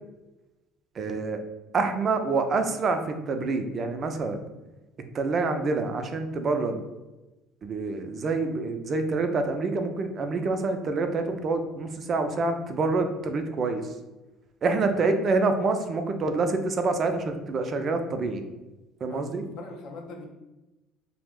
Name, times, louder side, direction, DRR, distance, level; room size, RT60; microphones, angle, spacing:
voice 1, 1.0-1.4 1.7-4.4 5.1-6.8 7.6-13.9 14.6-18.4 19.0-19.4, right 3 dB, 40° right, 7 dB, 0.4 m, -27 dB
voice 2, 19.1-20.3, left 3 dB, 65° left, 0 dB, 0.5 m, -42 dB
2.4 x 2.0 x 3.5 m, 1.0 s
supercardioid pair, 90°, 0 cm